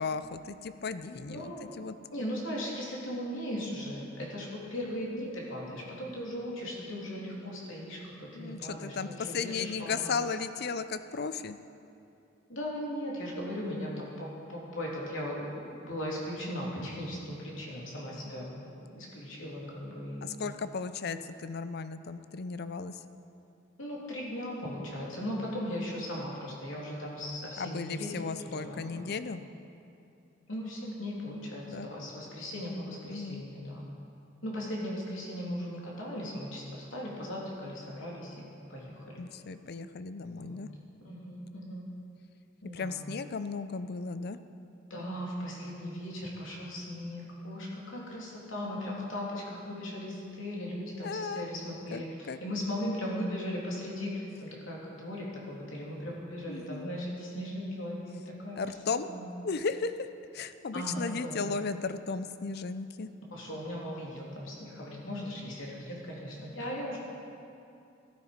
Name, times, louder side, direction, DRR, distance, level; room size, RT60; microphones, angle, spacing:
voice 1, 0.0-1.9 8.3-11.6 20.2-23.0 27.6-29.4 31.7-31.9 33.0-33.4 39.2-40.7 42.7-44.4 51.0-51.5 51.9-52.4 56.5-56.9 58.6-59.1 59.4-60.1 60.3-63.1, left 4 dB, 55° left, 12 dB, 0.6 m, -35 dB
voice 2, 1.3-1.7 2.1-10.2 12.5-18.6 18.9-20.3 23.8-28.1 28.5-29.1 30.5-33.9 34.4-38.4 38.7-39.2 40.4-40.6 41.0-41.9 42.6-43.0 44.9-58.6 59.0-59.3 60.7-61.6 63.3-67.0, equal, 80° left, -4 dB, 3.2 m, -38 dB
13.5 x 13.0 x 5.2 m, 2.7 s
head